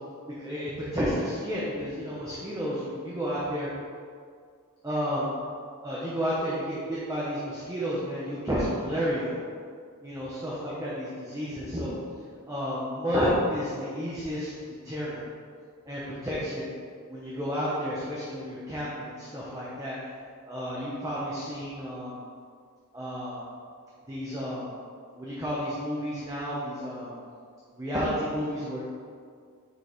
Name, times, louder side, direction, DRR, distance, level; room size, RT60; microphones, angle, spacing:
voice 1, 0.4-3.7 4.8-5.3 5.8-9.4 10.0-11.9 12.5-14.5 14.8-15.2 15.9-16.7 17.1-20.0 20.5-22.2 22.9-23.4 24.1-24.7 25.2-27.1 27.7-28.8, equal, 15° right, -8 dB, 0.9 m, -31 dB
6.6 x 5.3 x 3.1 m, 2.1 s
head